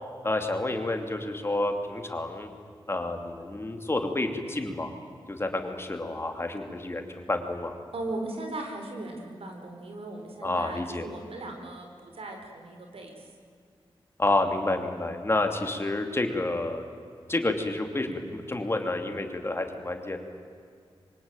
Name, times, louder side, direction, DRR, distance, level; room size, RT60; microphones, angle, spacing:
voice 1, 0.2-2.5 2.9-4.9 5.3-7.7 10.4-11.1 14.2-16.8 17.3-20.2, left 2 dB, 25° left, 5 dB, 2.7 m, -29 dB
voice 2, 7.9-13.3, right 2 dB, 85° right, 3 dB, 4.9 m, -38 dB
26.5 x 23.5 x 9.1 m, 2.2 s
wide cardioid pair, 105°, 10 cm